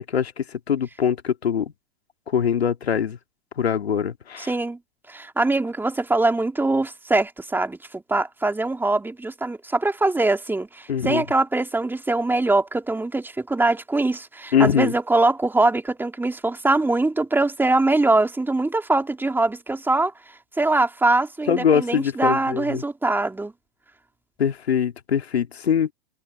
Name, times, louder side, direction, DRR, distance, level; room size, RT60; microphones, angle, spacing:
voice 1, 0.0-1.7 2.3-3.2 3.6-4.5 10.9-11.2 14.5-14.9 21.5-22.8 24.4-25.9, left 8 dB, 85° left, 2.2 m, -22 dB
voice 2, 4.4-4.8 5.1-20.1 20.6-23.5, right 2 dB, 5° right, 2.5 m, -22 dB
hypercardioid pair, 115°, 31 cm